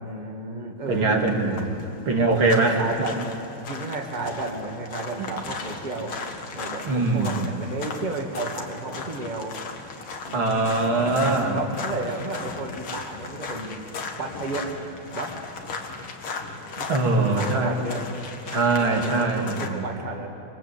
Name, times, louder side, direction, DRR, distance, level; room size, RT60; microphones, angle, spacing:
voice 1, 0.0-1.6 2.6-3.2 3.6-6.1 6.5-9.6 10.2-10.6 11.5-13.8 14.2-14.7 15.1-15.4 16.8-18.0 18.8-20.3, right 2 dB, 20° right, 2 dB, 2.1 m, -33 dB
sound 1, 0.9-19.7, left 4 dB, 85° left, 2.8 m, -37 dB
voice 2, 0.9-1.6 2.1-2.8 5.2-5.3 6.8-7.6 10.3-11.6 16.9-17.7 18.5-19.9, right 3 dB, 70° right, 1 dB, 3.2 m, -22 dB
26.0 x 25.5 x 8.3 m, 2.8 s
omnidirectional pair, 2.3 m